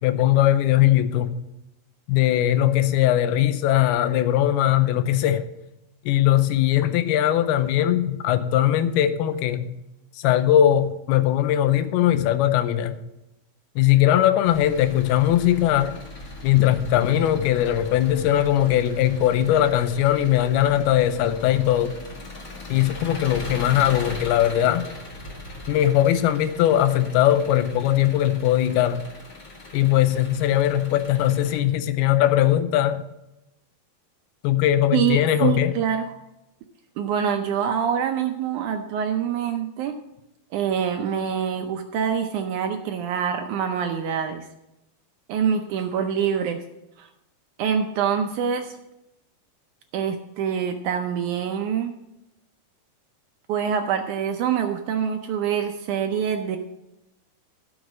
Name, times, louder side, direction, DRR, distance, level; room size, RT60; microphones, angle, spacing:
voice 1, 0.0-1.4 2.1-5.5 6.1-9.8 10.2-13.0 13.8-16.0 16.4-21.9 22.7-24.9 25.7-29.0 29.7-33.0 34.4-35.7, left 12 dB, 90° left, 12 dB, 2.6 m, -20 dB
Engine, 14.5-31.6, left 2 dB, 40° left, 1.2 m, -39 dB
voice 2, 34.9-36.1 37.0-39.9 40.5-44.4 45.3-46.6 47.0-47.1 47.6-48.8 49.9-51.9 53.5-56.6, right 8 dB, 80° right, 5 dB, 1.8 m, -25 dB
13.0 x 6.4 x 6.2 m, 0.90 s
omnidirectional pair, 4.4 m